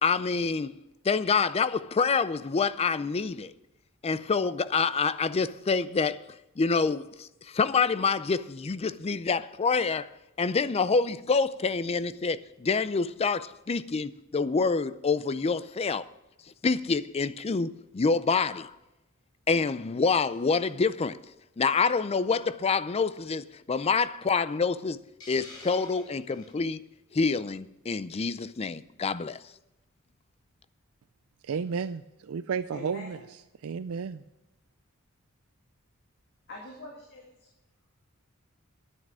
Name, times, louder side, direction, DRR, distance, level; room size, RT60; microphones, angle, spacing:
voice 1, 0.0-0.7 1.0-3.5 4.0-6.2 6.6-10.1 10.4-16.1 16.6-18.7 19.5-21.2 21.6-25.0 25.3-26.8 27.1-29.4, left 4 dB, 30° left, 0.4 m, -27 dB
Hiss, 25.2-26.5, left 2 dB, 70° left, 5.2 m, -47 dB
voice 2, 31.4-33.2 33.6-34.2, right 6 dB, 70° right, 0.4 m, -32 dB
voice 3, 32.7-33.2 36.5-37.5, left 1 dB, 50° left, 2.1 m, -44 dB
10.5 x 9.5 x 6.3 m
head